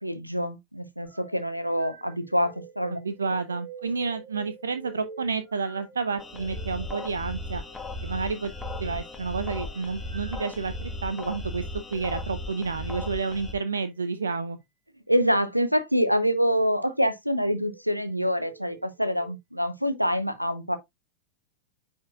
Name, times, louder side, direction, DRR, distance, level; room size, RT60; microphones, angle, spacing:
voice 1, 0.0-3.0 15.1-20.8, equal, 90° right, 0.8 m, -26 dB
sound 1, 1.0-11.0 11.7-12.0 14.0-14.3 15.2-15.7 16.2-16.5 17.3-17.8 18.3-19.3, right 5 dB, 35° right, 4.1 m, -48 dB
voice 2, 2.9-7.6 8.0-8.5 8.8-11.6 11.9-14.6, right 4 dB, 70° right, 0.5 m, -30 dB
sound 2, 6.2-13.5, left 2 dB, 10° left, 1.3 m, -36 dB
9.3 x 4.4 x 2.4 m
figure-of-eight pair, 90°, 0 cm